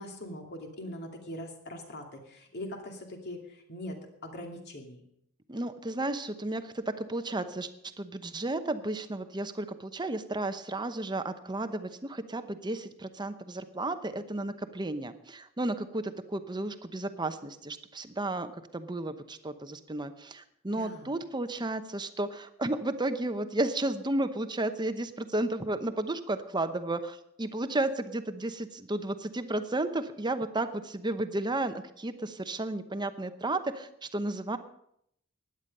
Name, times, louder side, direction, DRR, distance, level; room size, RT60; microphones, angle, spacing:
voice 1, 0.0-5.0 20.7-21.1, left 1 dB, 50° left, 2 dB, 2.6 m, -42 dB
voice 2, 5.5-7.7 8.0-34.6, right 2 dB, 20° right, 10 dB, 0.9 m, -33 dB
16.0 x 10.5 x 5.4 m, 0.73 s
head